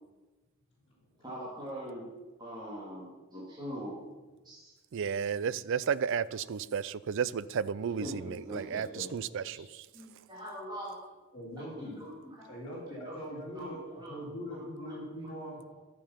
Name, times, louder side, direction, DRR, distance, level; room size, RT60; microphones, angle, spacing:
voice 1, 1.2-2.1 2.4-4.0 4.4-4.7 8.0-9.2 9.9-11.0 11.8-12.5 12.9-14.2 14.5-15.3 15.7-15.8, equal, 20° right, -6 dB, 2.4 m, -43 dB
voice 2, 4.9-9.7, right 7 dB, 65° right, 18 dB, 0.4 m, -33 dB
voice 3, 11.3-12.0 12.4-15.6, equal, 25° left, -8 dB, 3.4 m, -42 dB
13.0 x 7.0 x 5.7 m, 1.2 s
head